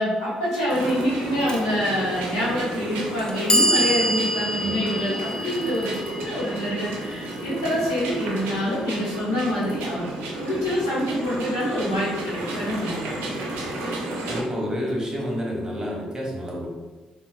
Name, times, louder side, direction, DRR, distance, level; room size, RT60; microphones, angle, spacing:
voice 1, 0.0-10.1 10.4-13.0, equal, 85° left, -8 dB, 1.0 m, -26 dB
sound 1, 0.7-14.4, right 1 dB, 75° right, 0.5 m, -32 dB
Clock, 1.5-1.6 2.6-2.7 3.2-9.2, equal, 20° left, 0.5 m, -27 dB
voice 2, 14.2-16.7, equal, 20° right, -3 dB, 1.1 m, -29 dB
3.8 x 2.3 x 2.5 m, 1.2 s
hypercardioid pair, 45°, 3 cm